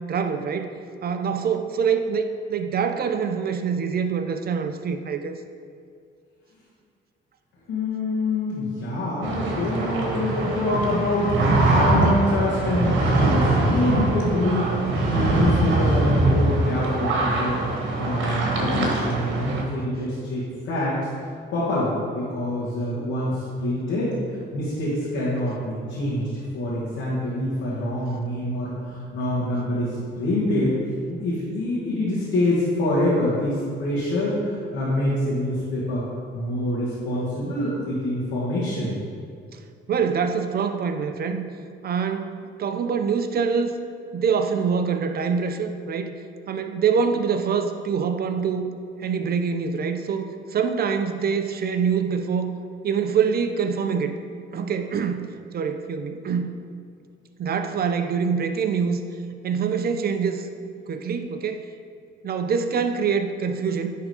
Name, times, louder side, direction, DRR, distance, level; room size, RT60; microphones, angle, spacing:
voice 1, 0.1-0.7 1.0-5.3 39.5-39.6 39.9-41.4 41.8-43.7 44.1-46.1 46.5-48.7 49.0-52.5 52.8-54.1 54.5-56.5 57.4-59.0 59.4-60.5 60.9-61.7 62.2-63.9, right 6 dB, 50° right, 7 dB, 0.7 m, -25 dB
voice 2, 7.7-24.2 24.5-30.8 31.1-36.0 36.3-39.0, left 1 dB, 85° left, -9 dB, 1.9 m, -26 dB
sound 1, 9.2-19.6, right 2 dB, 80° right, 1.4 m, -22 dB
10.0 x 3.8 x 4.9 m, 2.3 s
cardioid pair, 90°, 20 cm